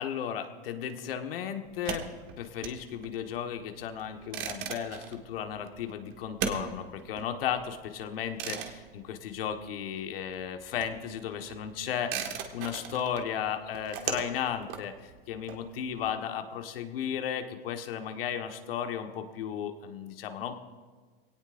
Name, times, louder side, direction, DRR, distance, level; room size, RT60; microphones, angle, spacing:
voice 1, 0.0-2.1 2.4-20.6, left 8 dB, 70° left, 6 dB, 1.5 m, -35 dB
sound 1, 1.7-10.0 10.3-16.1, right 8 dB, 45° right, 1.8 m, -39 dB
22.5 x 18.0 x 2.6 m, 1.4 s
hypercardioid pair, 120°, 30 cm